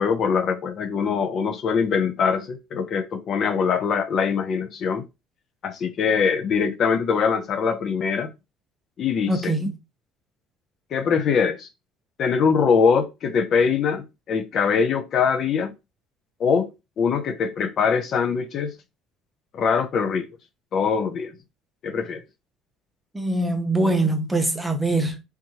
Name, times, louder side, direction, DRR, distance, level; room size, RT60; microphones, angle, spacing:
voice 1, 0.0-5.0 5.6-8.3 9.0-9.5 10.9-11.7 12.2-15.7 16.4-16.7 17.0-18.7 19.5-20.3 20.7-21.3 21.8-22.2, left 6 dB, 45° left, 0.5 m, -22 dB
voice 2, 9.3-9.7 23.1-25.2, right 2 dB, 5° right, 0.7 m, -23 dB
3.5 x 3.0 x 2.8 m
cardioid pair, 140°, 0 cm